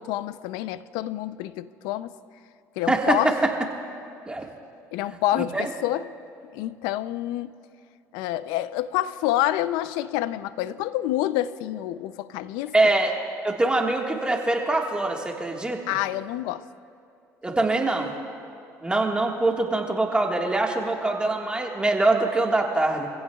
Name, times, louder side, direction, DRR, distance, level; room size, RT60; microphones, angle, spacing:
voice 1, 0.0-2.1 2.8-3.3 4.9-6.1 6.5-7.6 8.1-12.7 15.9-16.6, left 14 dB, 80° left, 0.5 m, -27 dB
voice 2, 2.9-3.3 4.3-4.5 5.3-5.7 12.7-13.1 13.4-15.8 17.4-18.1 18.8-23.1, right 2 dB, 15° right, 1.6 m, -23 dB
25.5 x 16.0 x 2.4 m
supercardioid pair, 85°, 7 cm